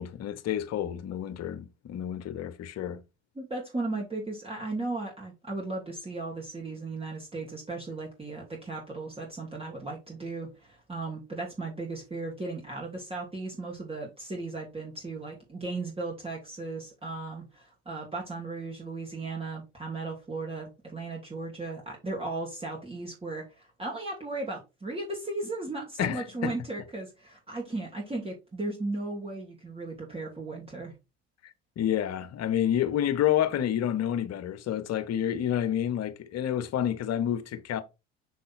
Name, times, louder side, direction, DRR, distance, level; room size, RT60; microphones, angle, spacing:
voice 1, 0.0-3.0 26.0-26.5 31.8-37.8, left 10 dB, 45° left, 1.1 m, -29 dB
voice 2, 3.4-30.9, right 2 dB, 15° right, 2.6 m, -36 dB
6.5 x 3.8 x 4.2 m
hypercardioid pair, 70°, 34 cm